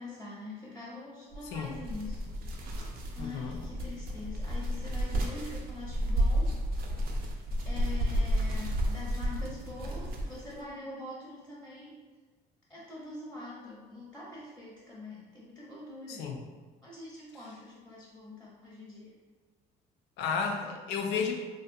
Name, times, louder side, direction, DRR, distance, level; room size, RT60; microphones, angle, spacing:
voice 1, 0.0-2.8 3.1-6.6 7.6-12.0 12.7-16.3 16.8-19.1, left 2 dB, 5° left, -6 dB, 0.6 m, -44 dB
sound 1, 1.3-10.6, equal, 65° right, 0.5 m, -32 dB
voice 2, 3.2-3.7 16.1-16.4 20.2-21.3, left 6 dB, 90° left, 2 dB, 0.4 m, -32 dB
2.6 x 2.2 x 2.6 m, 1.4 s
cardioid pair, 110°, 17 cm